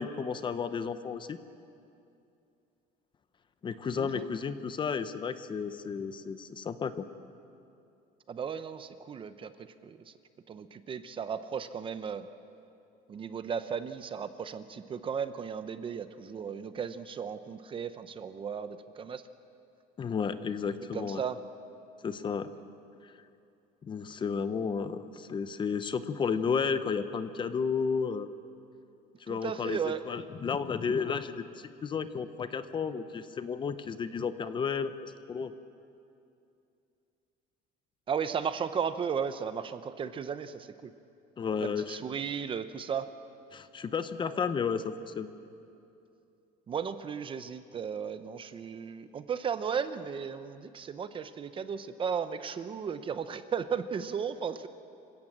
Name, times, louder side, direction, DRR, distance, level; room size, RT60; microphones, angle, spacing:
voice 1, 0.0-1.4 3.6-7.0 20.0-21.2 22.0-22.5 23.8-28.3 29.3-29.8 30.1-35.5 41.4-42.0 43.5-45.3, left 6 dB, 25° left, 11 dB, 0.8 m, -32 dB
voice 2, 3.9-4.3 8.3-9.5 9.8-10.1 10.5-12.3 13.1-19.2 20.9-21.4 29.3-30.0 38.1-40.9 41.6-43.1 46.7-54.7, right 7 dB, 30° right, 11 dB, 0.8 m, -35 dB
26.5 x 17.0 x 7.4 m, 2.6 s
cardioid pair, 150°, 18 cm